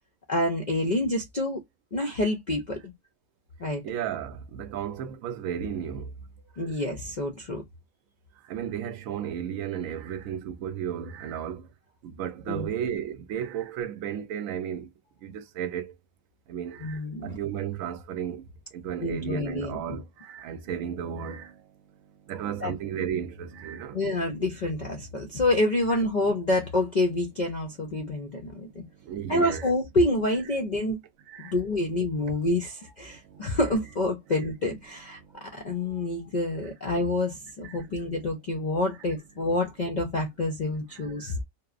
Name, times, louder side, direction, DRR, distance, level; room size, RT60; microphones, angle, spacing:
voice 1, 0.3-1.6 1.9-2.9 3.6-3.8 6.6-7.6 12.5-12.7 16.8-17.4 19.0-20.0 22.6-22.7 23.9-28.8 29.3-31.0 31.4-41.4, left 1 dB, 65° left, 0.4 m, -27 dB
voice 2, 3.8-6.1 6.7-6.8 8.4-11.7 12.0-14.9 15.2-16.0 16.5-24.0 25.2-25.4 25.9-26.0 28.1-28.2 28.6-29.7 31.3-31.5 33.1-33.6 34.3-34.4 35.2-36.1 36.6-36.7 37.6-37.9 40.9-41.4, right 9 dB, 75° right, 1.0 m, -35 dB
2.8 x 2.0 x 2.4 m
omnidirectional pair, 1.5 m